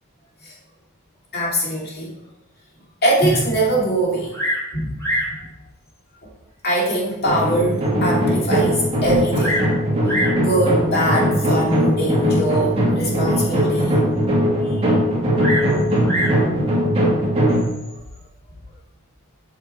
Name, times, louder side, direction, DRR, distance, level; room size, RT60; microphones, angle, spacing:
voice 1, 1.3-2.1 3.0-4.3 4.7-5.4 6.6-9.6 10.4-14.0 14.6-15.0 17.7-17.8, right 1 dB, 45° left, -4 dB, 2.4 m, -22 dB
Bird vocalization bird call bird song, 4.3-4.7 5.0-5.4 6.2-6.3 6.9-7.0 7.5-7.6 7.8-7.9 9.0-9.7 10.0-10.4 11.4-11.7 15.4-16.4 17.5-17.9, equal, 15° left, 3.3 m, -25 dB
sound 1, 7.2-17.6, equal, 25° right, 1.8 m, -20 dB
7.7 x 5.7 x 4.3 m, 0.91 s
head